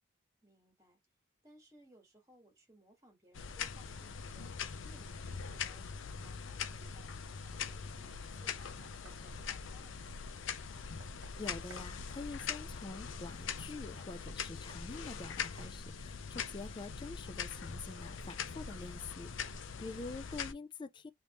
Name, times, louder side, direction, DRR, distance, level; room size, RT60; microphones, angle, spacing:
voice 1, 0.4-1.0 1.4-5.2 5.5-8.8 9.0-10.2, equal, 15° right, 1.6 m, -63 dB
sound 1, 3.3-20.5, left 6 dB, 75° left, 0.5 m, -42 dB
Knock, 8.1-9.3 10.8-11.9 14.0-14.1 14.7-14.9 15.6-15.8, right 5 dB, 90° right, 0.8 m, -60 dB
voice 2, 11.4-21.1, left 3 dB, 25° left, 0.3 m, -46 dB
3.4 x 2.8 x 2.9 m
head